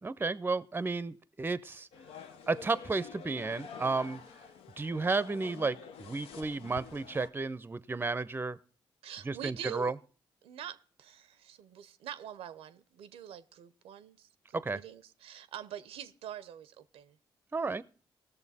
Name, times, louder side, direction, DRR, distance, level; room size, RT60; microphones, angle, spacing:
voice 1, 0.0-1.9 2.5-4.2 4.8-8.6 9.2-9.9 14.5-14.8 17.5-17.8, right 3 dB, 20° right, 0.5 m, -32 dB
sound 1, 1.9-7.3, left 7 dB, 85° left, 0.6 m, -48 dB
voice 2, 9.0-9.9 10.4-17.2, right 10 dB, 90° right, 0.6 m, -45 dB
17.5 x 6.8 x 4.1 m
cardioid pair, 65°, 10 cm